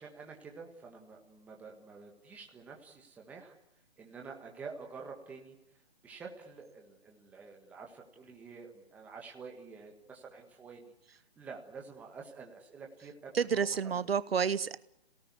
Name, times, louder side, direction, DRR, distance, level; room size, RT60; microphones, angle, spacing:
voice 1, 0.0-3.5 4.0-5.5 6.0-14.0, right 5 dB, 5° right, 1 dB, 1.6 m, -49 dB
voice 2, 13.3-14.8, right 6 dB, 70° right, 16 dB, 1.0 m, -30 dB
29.0 x 18.0 x 9.6 m, 0.89 s
hypercardioid pair, 165°, 31 cm